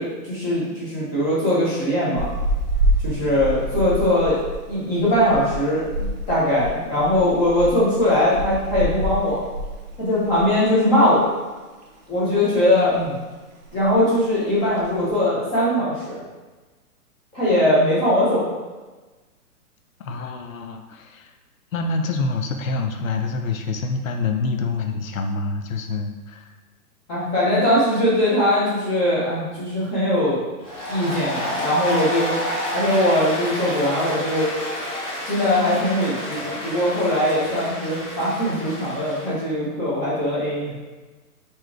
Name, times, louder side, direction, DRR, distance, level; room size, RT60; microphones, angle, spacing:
voice 1, 0.0-2.3 3.0-4.4 4.7-9.4 10.0-11.3 12.1-13.1 13.7-16.2 17.3-18.5 27.1-30.4 30.9-32.4 32.7-34.5 35.2-40.7, left 1 dB, 10° left, -10 dB, 0.9 m, -21 dB
sound 1, 2.2-10.7 10.9-11.2 11.5-12.4 12.7-13.1 13.3-13.4 13.6-14.1 14.6-15.1, right 1 dB, 30° right, 0.8 m, -27 dB
voice 2, 20.0-21.3 21.7-26.5, left 3 dB, 60° left, 5 dB, 0.8 m, -26 dB
Applause, 30.6-39.3, left 1 dB, 25° left, 1.5 m, -29 dB
4.7 x 4.5 x 4.8 m, 1.2 s
hypercardioid pair, 175°, 46 cm